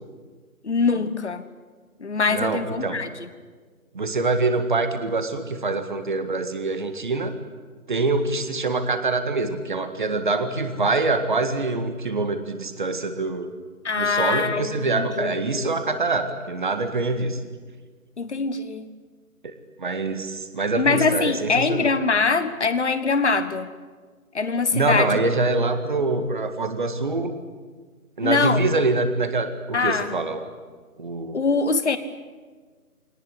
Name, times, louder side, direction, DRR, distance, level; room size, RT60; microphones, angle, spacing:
voice 1, 0.6-1.4 2.0-3.3 13.8-15.8 18.2-18.9 20.7-23.7 24.3-25.2 28.2-28.6 29.7-30.1 31.3-32.0, left 4 dB, 50° left, 11 dB, 1.5 m, -23 dB
voice 2, 2.3-3.0 3.9-7.3 7.9-13.5 14.0-17.4 19.4-19.5 19.8-21.9 24.7-27.3 28.2-30.5 31.0-31.4, right 3 dB, 35° right, 8 dB, 1.8 m, -25 dB
24.0 x 19.0 x 10.0 m, 1.5 s
figure-of-eight pair, 165°, 44 cm